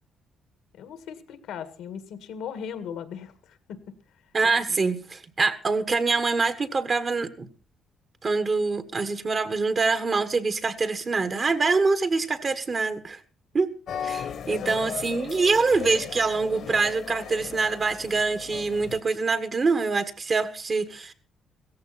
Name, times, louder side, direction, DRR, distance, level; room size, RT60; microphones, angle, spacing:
voice 1, 0.7-3.8 4.7-4.8 14.4-14.7, left 7 dB, 85° left, 11 dB, 1.8 m, -38 dB
voice 2, 4.3-7.5 8.2-13.2 13.5-13.7 14.0-21.1, right 4 dB, 40° right, 11 dB, 1.5 m, -25 dB
sound 1, 13.9-19.0, left 8 dB, 65° left, 1.4 m, -37 dB
16.5 x 14.5 x 4.2 m, 0.36 s
cardioid pair, 90°, 0 cm